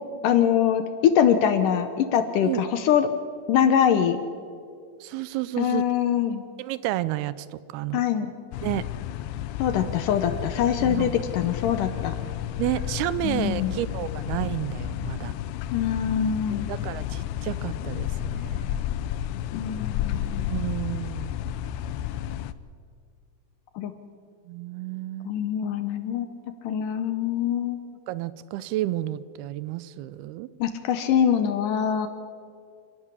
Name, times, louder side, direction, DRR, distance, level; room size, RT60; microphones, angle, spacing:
voice 1, 0.2-3.1 3.5-4.2 5.6-6.4 7.9-8.3 9.6-12.1 13.2-13.7 15.7-16.7 19.5-20.5 23.8-23.9 25.3-26.3 26.6-27.8 30.6-32.1, left 9 dB, 70° left, 10 dB, 2.2 m, -23 dB
voice 2, 5.0-5.8 6.6-8.0 8.6-8.9 10.8-11.1 12.6-15.3 16.5-18.8 20.5-21.4 24.5-25.4 28.1-30.5, right 15 dB, 85° right, 17 dB, 2.6 m, -31 dB
sound 1, 8.5-22.5, left 11 dB, 90° left, 2.7 m, -31 dB
27.0 x 12.0 x 9.9 m, 2.2 s
omnidirectional pair, 4.5 m